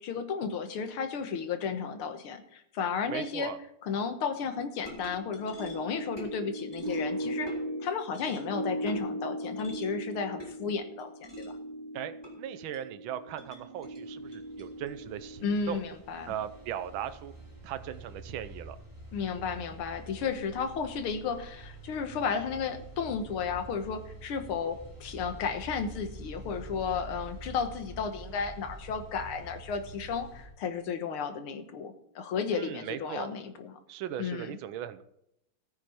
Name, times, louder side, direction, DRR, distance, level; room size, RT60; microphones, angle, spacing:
voice 1, 0.0-3.5 3.8-7.5 7.8-11.1 11.4-11.5 15.4-16.3 19.1-33.8 34.2-34.5, left 6 dB, 75° left, 8 dB, 2.1 m, -33 dB
voice 2, 3.1-3.6 11.9-15.8 16.3-17.3 17.6-18.8 32.5-33.3 33.9-35.0, right 10 dB, 70° right, 11 dB, 1.5 m, -38 dB
sound 1, 4.8-17.2, equal, 10° left, 3.6 m, -38 dB
sound 2, 14.0-30.5, right 2 dB, 10° right, 2.9 m, -47 dB
14.0 x 9.7 x 4.4 m, 0.77 s
omnidirectional pair, 2.4 m